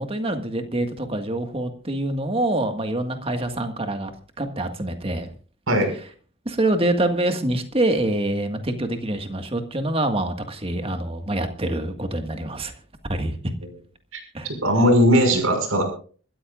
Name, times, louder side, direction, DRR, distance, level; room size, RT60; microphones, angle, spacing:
voice 1, 0.0-4.1 4.4-5.3 6.5-12.7 13.1-13.4 14.3-14.5, right 1 dB, 30° right, 6 dB, 1.7 m, -25 dB
voice 2, 14.6-15.8, equal, 85° right, 5 dB, 6.1 m, -18 dB
26.0 x 13.5 x 2.5 m, 0.41 s
head